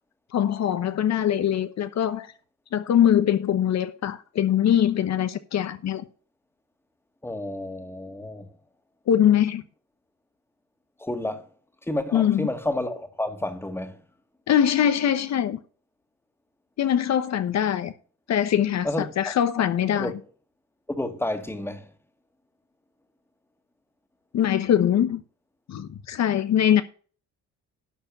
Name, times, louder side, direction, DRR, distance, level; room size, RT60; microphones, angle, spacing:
voice 1, 0.3-2.3 2.7-6.0 9.1-9.6 12.1-12.5 14.5-15.6 16.8-17.9 18.3-20.1 24.3-25.2 25.7-26.8, left 10 dB, 60° left, 1.0 m, -22 dB
voice 2, 7.2-8.5 11.0-11.5 11.9-14.0 18.8-19.3 19.9-20.1 21.0-21.9, left 1 dB, 10° left, 1.9 m, -30 dB
12.0 x 4.5 x 7.2 m
cardioid pair, 90°, 30 cm